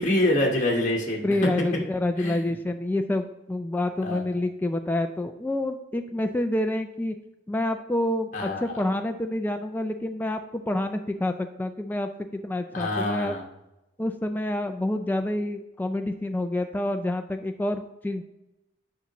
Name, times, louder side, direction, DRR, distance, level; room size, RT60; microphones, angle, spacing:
voice 1, 0.0-1.4 2.2-2.5 4.0-4.2 8.3-8.7 12.7-13.4, left 1 dB, 40° left, -1 dB, 1.2 m, -26 dB
voice 2, 1.2-7.1 7.5-13.3 14.0-18.2, left 1 dB, 10° left, 5 dB, 0.3 m, -28 dB
8.4 x 5.7 x 3.0 m, 0.94 s
head